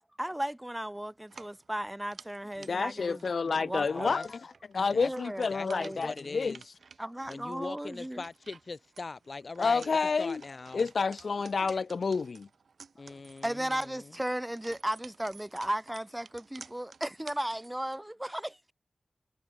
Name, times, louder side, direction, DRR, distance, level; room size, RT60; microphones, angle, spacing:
voice 1, 0.2-3.2 3.5-4.1 4.9-6.1 7.0-8.2 13.4-18.7, right 1 dB, 10° right, 1.9 m, -35 dB
sound 1, 1.2-18.0, right 5 dB, 80° right, 5.3 m, -54 dB
voice 2, 2.7-4.4 4.7-6.5 9.6-10.4 10.7-12.5, left 4 dB, 70° left, 0.8 m, -29 dB
voice 3, 3.8-4.3 4.9-5.1 5.5-6.6 7.3-10.9 13.0-14.2, left 3 dB, 50° left, 4.4 m, -41 dB
wide cardioid pair, 115°, 0 cm